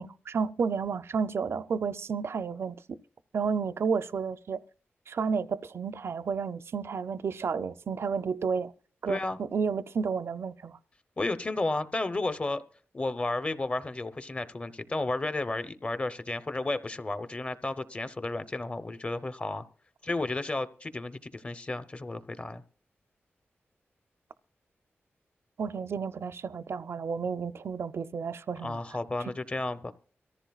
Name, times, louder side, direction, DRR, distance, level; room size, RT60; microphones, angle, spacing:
voice 1, 0.0-3.0 3.3-4.6 5.1-8.7 9.0-10.8 25.6-28.8, right 5 dB, 70° right, 0.5 m, -31 dB
voice 2, 9.1-9.4 11.2-12.6 12.9-19.6 20.0-22.6 28.6-29.9, left 2 dB, 30° left, 0.8 m, -32 dB
23.5 x 14.0 x 2.4 m
wide cardioid pair, 110°, 4 cm